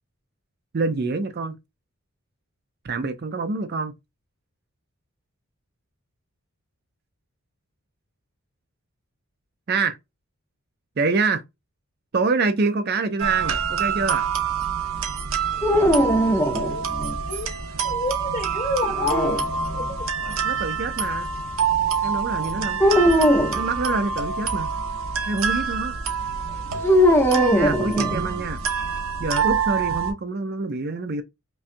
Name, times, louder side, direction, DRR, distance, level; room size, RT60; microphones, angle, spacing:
voice 1, 0.7-1.6 2.8-3.9 9.7-10.0 11.0-11.4 12.1-14.3 20.4-21.3 22.0-22.8 23.5-24.7 25.3-26.0 27.5-28.6 29.2-31.2, right 3 dB, 45° right, 0.4 m, -26 dB
sound 1, 13.2-30.1, right 6 dB, 70° right, 0.8 m, -26 dB
sound 2, 15.6-17.2 18.8-19.9 22.8-23.6 26.8-28.5, equal, 10° left, 0.6 m, -20 dB
voice 2, 16.5-16.8 17.2-17.5 17.8-19.4 19.7-19.8, left 2 dB, 35° left, 1.5 m, -28 dB
5.3 x 2.3 x 2.6 m
head